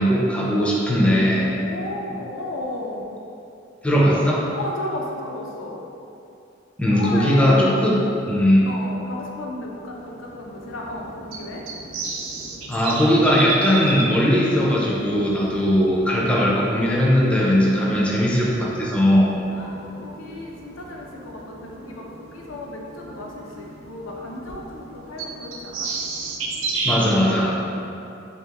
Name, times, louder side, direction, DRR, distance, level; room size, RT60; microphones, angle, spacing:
voice 1, 0.0-1.5 3.8-4.5 6.8-8.0 8.3-8.7 12.7-19.3 26.8-27.6, equal, 5° left, -5 dB, 0.4 m, -19 dB
voice 2, 1.5-3.1 4.5-5.8 6.9-7.8 8.7-11.7 17.8-18.2 19.5-25.9, left 2 dB, 85° left, -2 dB, 0.5 m, -34 dB
sound 1, 9.2-27.0, right 3 dB, 75° right, 0.4 m, -34 dB
3.0 x 2.9 x 3.4 m, 2.7 s
head